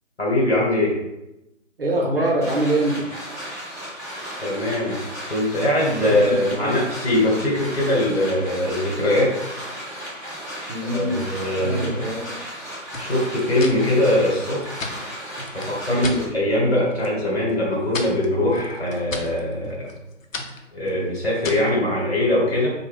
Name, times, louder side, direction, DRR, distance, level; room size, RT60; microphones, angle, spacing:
voice 1, 0.2-0.9 4.4-4.9 5.3-9.5 10.9-12.0 13.0-14.8 15.5-19.9 20.7-22.7, left 1 dB, 55° left, -4 dB, 1.3 m, -22 dB
voice 2, 1.8-2.9 6.1-6.7 10.7-11.3 11.6-12.2 15.9-16.2, right 1 dB, 50° right, 0 dB, 0.7 m, -23 dB
sound 1, 2.4-16.3, equal, 15° left, 0.7 m, -35 dB
sound 2, 12.9-16.2 16.6-17.2 17.5-21.8, left 2 dB, 85° left, 0.7 m, -35 dB
3.0 x 2.3 x 3.3 m, 0.91 s
figure-of-eight pair, 160°, 38 cm